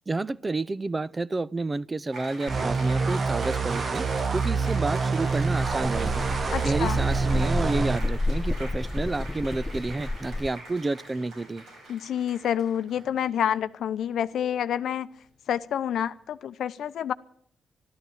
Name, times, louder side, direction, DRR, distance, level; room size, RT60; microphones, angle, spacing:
voice 1, 0.1-4.1 4.3-6.2 6.6-11.6, right 3 dB, 30° right, 0.5 m, -30 dB
Applause, 2.1-13.5, right 2 dB, 75° right, 6.5 m, -43 dB
sound 1, 2.5-8.0, right 4 dB, 50° right, 0.9 m, -26 dB
sound 2, 5.2-10.5, left 2 dB, 10° left, 0.7 m, -31 dB
voice 2, 6.5-7.0 11.9-15.1 15.5-17.1, left 9 dB, 80° left, 0.6 m, -28 dB
13.0 x 12.5 x 8.6 m
supercardioid pair, 60°, 0 cm